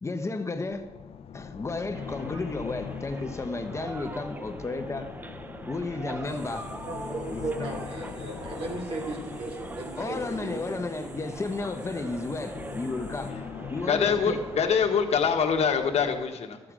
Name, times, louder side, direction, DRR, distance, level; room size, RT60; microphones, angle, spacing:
voice 1, 0.0-0.9 1.3-5.1 5.7-6.7 7.3-7.5 10.0-13.4 13.7-14.4, left 3 dB, 25° left, 7 dB, 0.8 m, -33 dB
sound 1, 0.5-16.2, left 7 dB, 65° left, 0.4 m, -42 dB
sound 2, 1.9-14.7, right 2 dB, 15° right, 0.4 m, -42 dB
sound 3, 6.2-13.3, right 1 dB, 40° right, 2.4 m, -51 dB
voice 2, 6.8-11.0, right 3 dB, 60° right, 1 dB, 2.7 m, -36 dB
voice 3, 13.9-16.6, left 6 dB, 80° left, 5 dB, 1.2 m, -24 dB
14.0 x 7.8 x 4.9 m, 1.2 s
wide cardioid pair, 135°, 11 cm